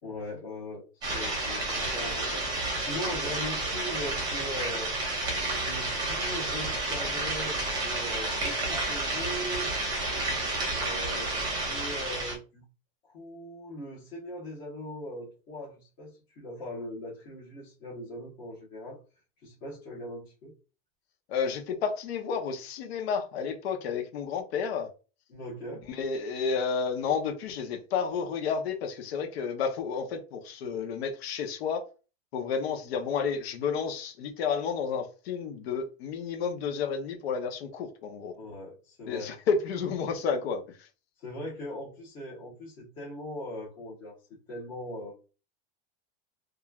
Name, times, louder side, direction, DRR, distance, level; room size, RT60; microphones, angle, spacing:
voice 1, 0.0-4.9 5.5-9.7 10.7-12.6 13.0-19.0 19.4-20.5 25.3-25.8 38.4-39.3 41.2-44.2 44.5-45.1, left 1 dB, 35° left, 1.1 m, -40 dB
sound 1, 1.0-12.4, right 2 dB, 15° right, 0.7 m, -31 dB
voice 2, 21.3-24.9 25.9-31.8 32.3-38.3 39.1-40.6, left 6 dB, 85° left, 0.7 m, -31 dB
3.1 x 2.4 x 2.3 m
supercardioid pair, 170°, 30 cm